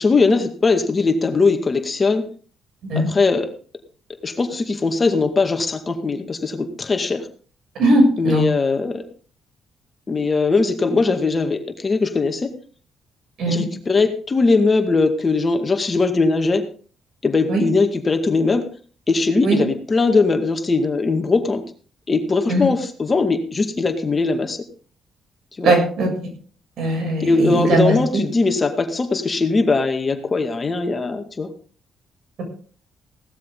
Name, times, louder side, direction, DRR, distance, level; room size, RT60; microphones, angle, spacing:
voice 1, 0.0-2.3 3.0-3.5 4.2-7.3 8.2-9.0 10.1-12.5 13.5-16.7 17.2-18.7 19.1-21.6 22.1-24.6 25.6-25.7 27.2-31.5, left 3 dB, 30° left, 6 dB, 2.1 m, -20 dB
voice 2, 7.8-8.5 13.4-13.6 17.5-17.6 19.4-19.6 22.5-22.7 25.6-26.1 26.8-28.0, right 1 dB, 70° right, 3 dB, 7.3 m, -18 dB
17.0 x 12.5 x 3.9 m, 0.41 s
cardioid pair, 90°, 0 cm